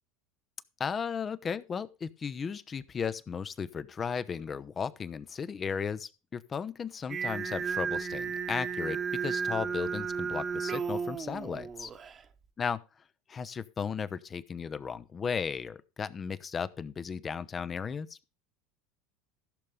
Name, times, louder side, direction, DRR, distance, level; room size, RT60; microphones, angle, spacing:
voice 1, 0.8-11.9 12.6-12.8 13.3-18.2, left 6 dB, 30° left, 0.9 m, -35 dB
Singing, 7.1-12.2, right 6 dB, 30° right, 1.2 m, -34 dB
15.0 x 6.8 x 5.1 m
hypercardioid pair, 75°, 0 cm